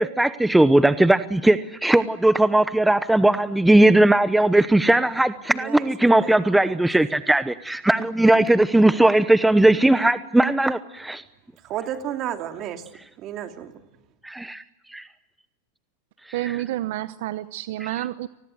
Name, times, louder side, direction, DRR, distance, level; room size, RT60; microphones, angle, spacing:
voice 1, 0.0-11.2 14.2-14.6 14.9-15.0, right 1 dB, 5° right, 0.9 m, -18 dB
voice 2, 5.5-5.9 6.2-6.8 11.6-12.9 13.2-13.8, right 10 dB, 40° right, 3.0 m, -33 dB
voice 3, 16.3-18.3, right 15 dB, 65° right, 0.9 m, -29 dB
30.0 x 20.0 x 7.9 m
hypercardioid pair, 115°, 0 cm